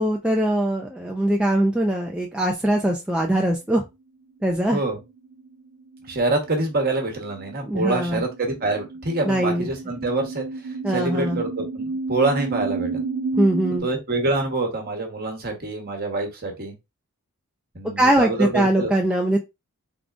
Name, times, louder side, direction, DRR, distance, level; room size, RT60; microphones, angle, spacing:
voice 1, 0.0-3.8 4.4-4.8 7.7-8.2 9.2-9.7 10.8-11.4 13.4-13.9 18.0-19.4, right 1 dB, 5° right, 0 dB, 0.4 m, -21 dB
sound 1, 5.2-13.8, right 4 dB, 70° right, 0.4 m, -32 dB
voice 2, 6.0-13.0 13.8-16.7 17.7-18.9, right 2 dB, 45° right, 3 dB, 1.1 m, -26 dB
3.7 x 3.5 x 2.5 m, 0.23 s
head